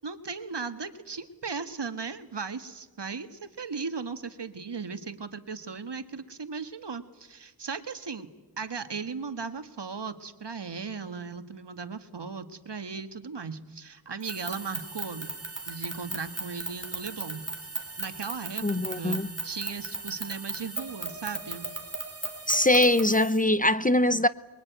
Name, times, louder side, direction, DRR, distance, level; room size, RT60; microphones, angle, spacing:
voice 1, 0.0-8.3 8.6-15.3 15.7-17.4 18.0-21.7, right 5 dB, 65° right, 1.7 m, -37 dB
sound 1, 14.2-23.4, right 2 dB, 30° right, 3.6 m, -37 dB
voice 2, 18.6-19.3 22.5-24.3, left 1 dB, 20° left, 0.8 m, -22 dB
24.0 x 22.5 x 9.2 m
wide cardioid pair, 50°, 44 cm